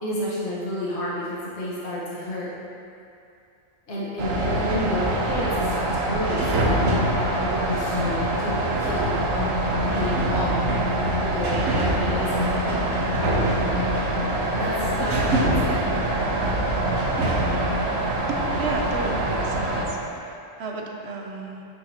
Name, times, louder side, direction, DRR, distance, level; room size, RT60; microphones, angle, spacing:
voice 1, 0.0-2.6 3.9-9.2 9.9-12.5 13.2-13.6 14.5-15.9, left 1 dB, 60° left, -8 dB, 1.6 m, -31 dB
sound 1, 4.2-19.8, right 1 dB, 90° right, 1.3 m, -24 dB
voice 2, 18.3-21.6, right 3 dB, 60° right, 0 dB, 0.9 m, -33 dB
8.7 x 5.6 x 2.9 m, 2.5 s
omnidirectional pair, 1.3 m